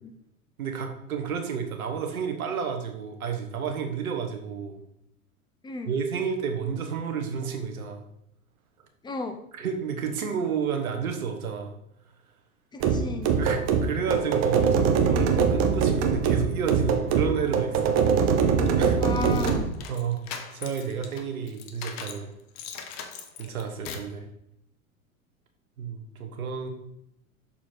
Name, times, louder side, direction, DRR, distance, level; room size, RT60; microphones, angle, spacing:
voice 1, 0.6-4.8 5.9-8.0 9.6-11.7 13.4-17.9 18.8-19.0 19.9-20.2 20.5-22.3 23.4-24.2 25.8-26.7, right 6 dB, 75° right, 5 dB, 1.3 m, -31 dB
voice 2, 9.0-9.4 12.7-13.4 19.0-19.7, left 3 dB, 10° left, 6 dB, 0.6 m, -33 dB
sound 1, 12.8-19.7, right 6 dB, 35° right, 0.9 m, -23 dB
sound 2, 18.7-22.2 22.6-24.2, left 7 dB, 40° left, 0.9 m, -40 dB
6.5 x 4.4 x 4.3 m, 0.76 s
hypercardioid pair, 90°, 43 cm